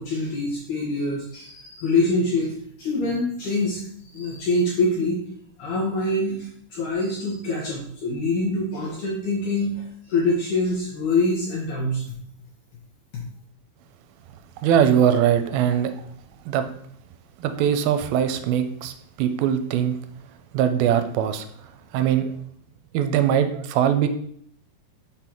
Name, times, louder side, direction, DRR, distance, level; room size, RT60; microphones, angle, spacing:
voice 1, 0.0-5.2 5.6-12.0 13.1-13.2, left 2 dB, 65° left, -4 dB, 2.2 m, -25 dB
voice 2, 14.6-15.9 16.5-16.6 17.4-18.9 19.2-20.0 20.5-21.5 21.9-22.3 22.9-24.1, right 9 dB, 85° right, 9 dB, 2.3 m, -21 dB
6.0 x 3.9 x 4.4 m, 0.65 s
omnidirectional pair, 4.4 m